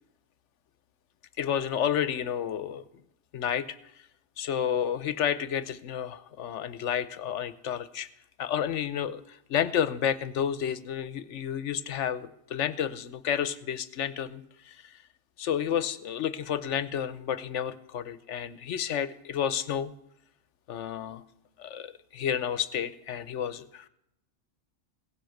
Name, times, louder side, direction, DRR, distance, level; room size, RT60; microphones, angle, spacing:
voice 1, 1.4-2.8 3.3-3.8 4.4-8.1 8.4-15.0 15.4-19.9 20.7-21.2 21.6-23.9, left 9 dB, 75° left, 15 dB, 1.1 m, -31 dB
16.5 x 10.5 x 6.5 m, 0.79 s
omnidirectional pair, 1.2 m